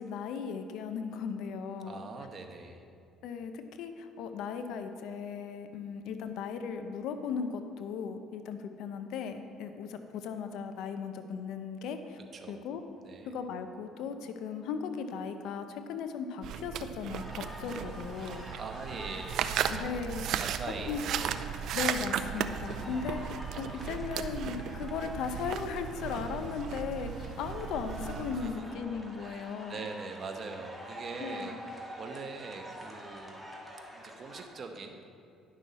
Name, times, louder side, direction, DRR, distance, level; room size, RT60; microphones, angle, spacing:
voice 1, 0.0-2.0 3.2-12.2 12.5-12.8 13.3-18.4 19.7-20.3 20.9-21.0 21.7-23.2 23.6-29.8 31.2-31.6, left 6 dB, 75° left, 8 dB, 0.6 m, -37 dB
voice 2, 1.8-2.8 12.3-12.6 13.0-13.3 18.6-20.0 20.4-21.4 28.4-28.8 29.2-33.5 33.9-35.0, right 4 dB, 45° right, 4 dB, 1.0 m, -42 dB
sound 1, 16.4-28.5, right 9 dB, 70° right, 0.4 m, -36 dB
sound 2, 17.1-34.4, equal, 5° right, 1.5 m, -47 dB
11.0 x 6.2 x 4.2 m, 2.4 s
supercardioid pair, 80°, 0 cm